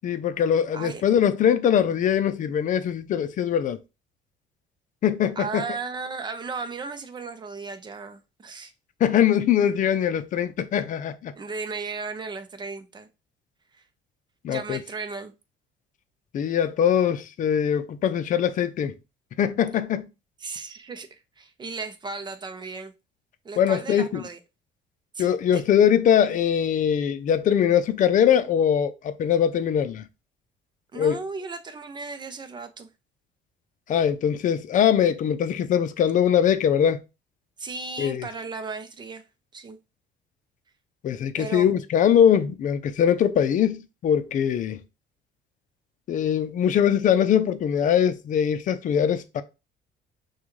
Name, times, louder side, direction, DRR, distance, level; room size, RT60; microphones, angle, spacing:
voice 1, 0.0-3.8 5.0-5.6 9.0-11.3 14.4-14.8 16.3-18.9 19.4-20.1 23.6-24.2 25.2-30.0 30.9-31.2 33.9-37.0 38.0-38.3 41.0-44.8 46.1-49.4, left 9 dB, 50° left, 0.6 m, -22 dB
voice 2, 5.4-8.7 11.3-13.1 13.7-13.8 14.5-15.3 20.4-22.9 23.4-24.4 25.1-25.6 30.9-32.9 37.6-39.2 39.5-39.8 41.3-41.7, right 4 dB, 25° right, 0.7 m, -35 dB
6.0 x 2.4 x 3.1 m
cardioid pair, 110°, 17 cm